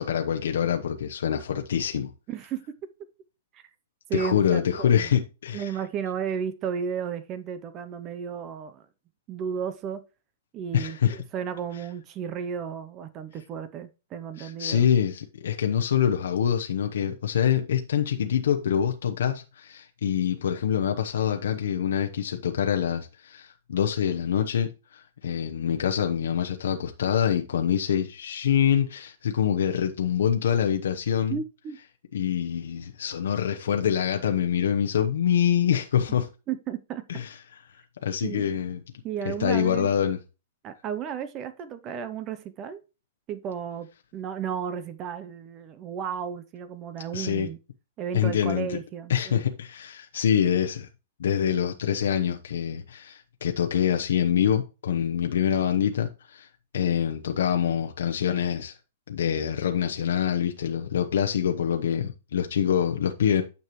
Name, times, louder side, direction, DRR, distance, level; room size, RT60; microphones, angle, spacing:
voice 1, 0.0-2.1 4.1-5.7 10.7-11.2 14.4-31.4 32.1-36.3 37.1-37.3 38.0-38.8 39.2-40.2 47.1-47.5 48.1-48.8 49.1-50.9 51.2-56.5 56.7-58.7 59.1-63.4, left 8 dB, 75° left, 0.9 m, -25 dB
voice 2, 2.3-2.7 3.5-3.6 4.1-5.1 5.5-8.8 9.3-10.0 10.5-14.9 31.3-31.8 36.5-37.0 38.2-38.5 39.0-39.9 40.6-42.8 43.3-47.6 48.0-49.4, right 7 dB, 25° right, 0.6 m, -33 dB
9.5 x 6.7 x 3.1 m
hypercardioid pair, 160°, 0 cm